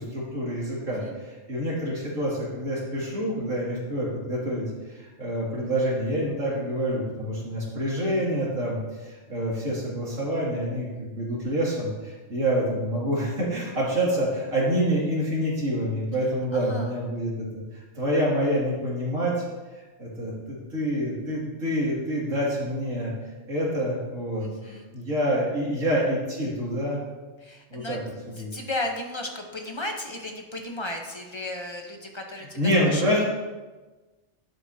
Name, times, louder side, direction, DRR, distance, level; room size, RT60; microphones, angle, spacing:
voice 1, 0.0-19.4 20.0-23.1 23.5-27.0 27.7-28.0 28.3-28.5 32.6-33.3, equal, 85° right, -6 dB, 3.0 m, -27 dB
voice 2, 16.5-16.9 24.4-24.9 27.4-28.0 28.4-32.6 32.9-33.0, left 2 dB, 25° left, 2 dB, 0.9 m, -34 dB
11.5 x 7.9 x 2.8 m, 1.2 s
omnidirectional pair, 1.3 m